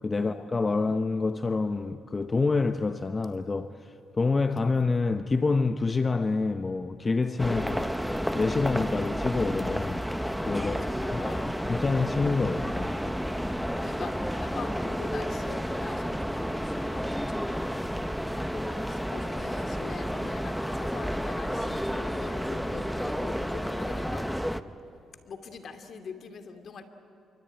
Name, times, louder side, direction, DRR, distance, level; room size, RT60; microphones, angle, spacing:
voice 1, 0.0-7.6 8.3-10.0 10.5-11.2 11.7-13.0, left 3 dB, 25° left, 0.8 m, -27 dB
voice 2, 7.4-8.0 10.6-11.5 13.8-14.1 14.4-17.8 18.5-24.2 25.3-26.9, left 5 dB, 55° left, 2.4 m, -43 dB
sound 1, 7.4-24.6, equal, ahead, 0.9 m, -31 dB
27.0 x 23.5 x 9.1 m
cardioid pair, 90°, 0 cm